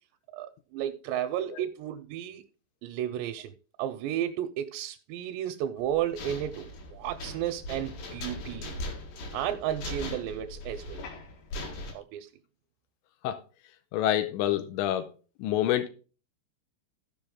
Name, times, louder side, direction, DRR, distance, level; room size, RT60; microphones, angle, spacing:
voice 1, 0.3-2.4 2.8-3.5 3.8-8.8 9.3-11.0 11.9-12.3, right 11 dB, 85° right, 2.8 m, -33 dB
sound 1, 5.8-11.9, left 1 dB, 60° left, 3.2 m, -39 dB
voice 2, 13.9-15.1 15.4-15.9, left 12 dB, 90° left, 3.0 m, -27 dB
15.5 x 5.4 x 3.7 m
omnidirectional pair, 5.0 m